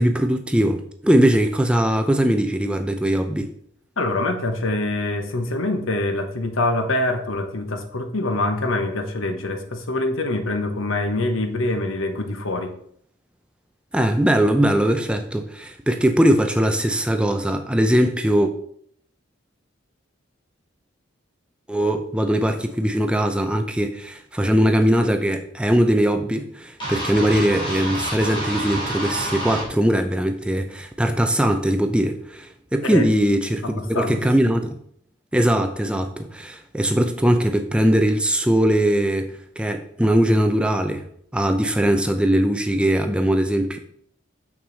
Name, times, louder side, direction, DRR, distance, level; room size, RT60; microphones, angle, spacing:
voice 1, 0.0-3.5 13.9-18.5 21.7-34.8 35.3-41.0 41.3-43.8, right 1 dB, 5° right, 0.4 m, -20 dB
voice 2, 4.0-12.7 32.8-33.1 33.6-34.2, left 2 dB, 85° left, 1.0 m, -25 dB
sound 1, 26.8-29.7, right 1 dB, 25° left, 3.0 m, -28 dB
6.4 x 6.0 x 4.0 m
head